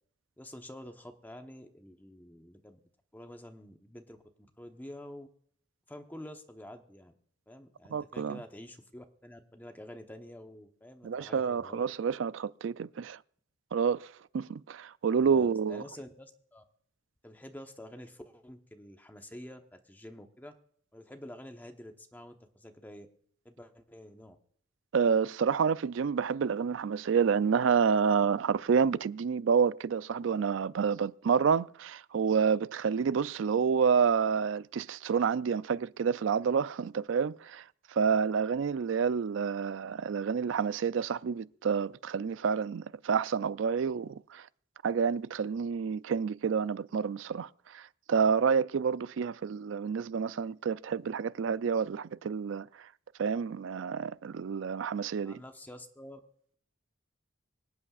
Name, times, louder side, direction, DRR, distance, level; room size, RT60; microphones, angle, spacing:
voice 1, 0.4-2.8 3.1-5.3 5.9-7.1 7.5-11.9 15.2-16.6 17.2-20.5 20.9-23.1 23.4-24.4 55.2-56.2, left 1 dB, 10° left, 0.9 m, -48 dB
voice 2, 7.9-8.4 11.0-13.2 13.7-15.8 24.9-37.6 37.9-44.5 44.8-52.7 53.2-55.4, right 6 dB, 75° right, 0.4 m, -29 dB
25.5 x 8.5 x 2.4 m
head